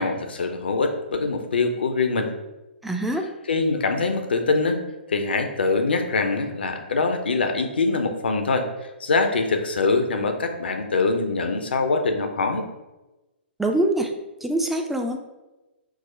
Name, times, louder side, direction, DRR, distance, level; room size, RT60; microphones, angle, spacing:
voice 1, 0.0-2.3 3.5-4.8 5.1-8.7 9.0-12.6, left 3 dB, 65° left, 6 dB, 0.5 m, -23 dB
voice 2, 2.8-3.2 13.6-14.1 14.4-15.2, right 1 dB, 5° right, 3 dB, 0.3 m, -24 dB
4.7 x 2.1 x 4.2 m, 1.1 s
figure-of-eight pair, 115°, 6 cm